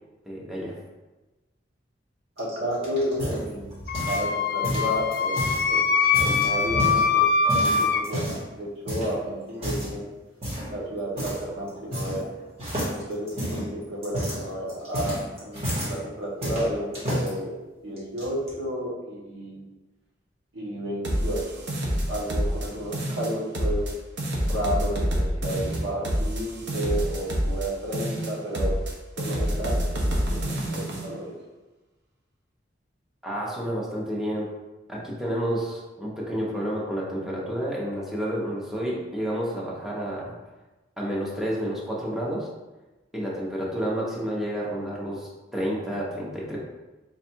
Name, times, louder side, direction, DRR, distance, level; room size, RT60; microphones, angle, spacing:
voice 1, 0.3-0.7 33.2-34.5 34.9-40.3 41.0-42.5 43.1-46.6, equal, ahead, -5 dB, 0.8 m, -30 dB
sound 1, 2.4-4.3 4.6-5.6 6.0-7.1 7.5-8.5 8.9-9.1 9.6-9.9 10.4-10.7 11.2-11.4 11.7-12.3 12.6-16.0 16.4-17.3 18.0-18.5, equal, 35° right, 1.4 m, -30 dB
voice 2, 2.4-3.7 4.0-5.4 5.7-5.8 6.2-10.1 10.7-12.3 12.9-17.5 17.8-19.6 20.5-21.7 22.1-23.8 24.5-28.7 29.2-31.3, equal, 85° right, -4 dB, 1.1 m, -32 dB
Wind instrument woodwind instrument, 3.9-8.0, left 5 dB, 55° left, 0.3 m, -23 dB
sound 2, 21.0-22.7 22.9-23.9 24.2-27.7 27.9-28.9 29.2-31.1, equal, 65° right, 0.8 m, -27 dB
3.4 x 2.4 x 4.4 m, 1.1 s
head